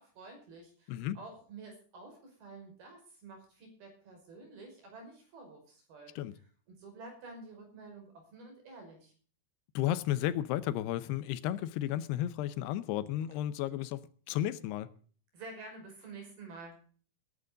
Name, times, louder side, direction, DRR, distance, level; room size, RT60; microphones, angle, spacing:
voice 1, 0.0-6.1 6.7-9.1 15.3-16.8, right 3 dB, 70° right, 7.3 m, -50 dB
voice 2, 9.8-14.0 14.3-14.9, left 12 dB, 90° left, 2.9 m, -33 dB
20.0 x 11.0 x 3.9 m
omnidirectional pair, 4.6 m